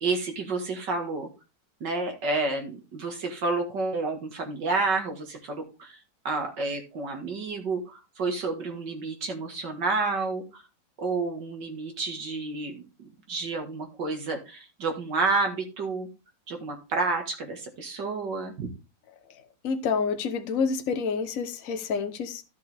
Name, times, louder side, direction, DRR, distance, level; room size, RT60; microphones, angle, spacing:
voice 1, 0.0-1.3 1.8-6.0 6.2-10.6 11.0-12.8 13.3-16.1 16.5-18.7, right 3 dB, 70° right, 2.4 m, -30 dB
voice 2, 19.6-22.4, left 5 dB, 50° left, 1.3 m, -28 dB
13.0 x 6.6 x 3.5 m
omnidirectional pair, 2.0 m